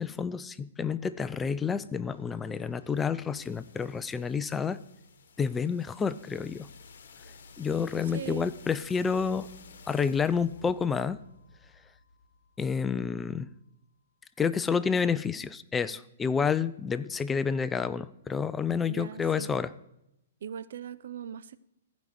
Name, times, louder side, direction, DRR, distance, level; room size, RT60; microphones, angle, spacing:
voice 1, 0.0-4.8 5.4-6.7 7.6-9.5 9.9-11.2 12.6-13.5 14.4-19.7, left 6 dB, 15° left, 14 dB, 0.4 m, -29 dB
sound 1, 1.7-13.5, left 4 dB, 60° left, 1.1 m, -54 dB
voice 2, 8.0-8.5 18.8-19.5 20.4-21.6, right 8 dB, 65° right, 15 dB, 0.5 m, -40 dB
15.0 x 5.3 x 6.3 m, 0.83 s
hypercardioid pair, 120°, 0 cm